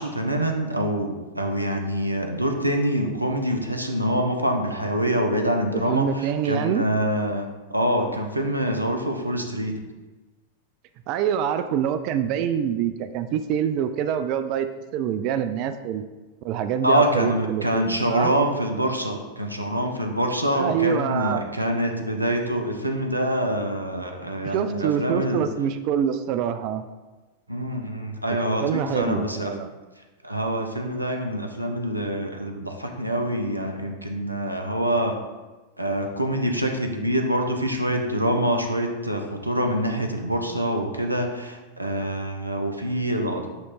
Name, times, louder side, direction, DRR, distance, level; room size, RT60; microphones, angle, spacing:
voice 1, 0.0-9.8 16.8-25.5 27.5-29.5 30.2-35.1 35.8-43.5, right 1 dB, 85° right, 4 dB, 0.7 m, -25 dB
voice 2, 5.7-6.8 11.1-16.0 16.4-18.3 20.5-21.4 24.4-26.8 28.4-29.7, right 9 dB, 40° right, 10 dB, 0.3 m, -25 dB
7.8 x 3.2 x 4.1 m, 1.2 s
figure-of-eight pair, 90°, 0 cm